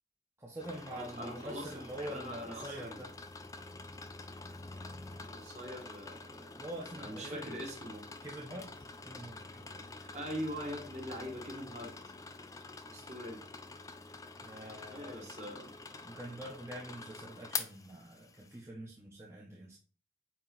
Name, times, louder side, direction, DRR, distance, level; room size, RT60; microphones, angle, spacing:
voice 1, 0.4-3.1 6.6-7.6 8.2-8.7 9.0-9.8 14.4-15.3 16.0-19.8, right 1 dB, 15° right, -3 dB, 0.9 m, -45 dB
sound 1, 0.6-18.6, left 4 dB, 20° left, 0.4 m, -47 dB
voice 2, 0.9-3.0 5.2-6.7 6.9-8.1 10.1-12.1 12.9-13.4 14.8-15.7, equal, 40° right, -1 dB, 1.9 m, -43 dB
8.8 x 3.0 x 3.9 m, 0.40 s
head